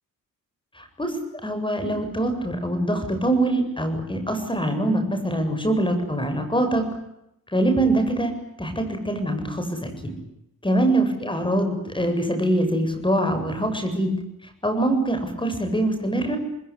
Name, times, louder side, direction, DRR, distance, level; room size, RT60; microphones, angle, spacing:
voice 1, 0.8-1.1 1.4-6.9 7.5-8.3 8.6-10.1 10.6-14.2 14.6-16.4, right 1 dB, 15° left, 9 dB, 7.8 m, -24 dB
27.0 x 20.5 x 9.9 m, 0.82 s
cardioid pair, 65°, 34 cm